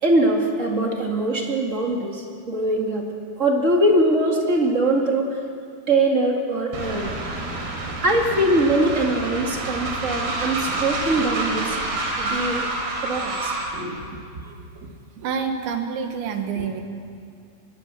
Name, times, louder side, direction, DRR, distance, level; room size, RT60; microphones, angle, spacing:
voice 1, 0.0-3.1 3.4-5.4 5.9-7.1 8.0-11.8 12.2-12.7 13.0-14.0 16.5-16.6, right 1 dB, 35° right, 1 dB, 1.2 m, -22 dB
Train, 6.7-13.8, right 2 dB, 60° right, 5.5 m, -28 dB
voice 2, 14.4-14.9 15.2-16.8, right 6 dB, 85° right, 5 dB, 4.0 m, -28 dB
24.5 x 21.0 x 7.6 m, 2.3 s
omnidirectional pair, 5.0 m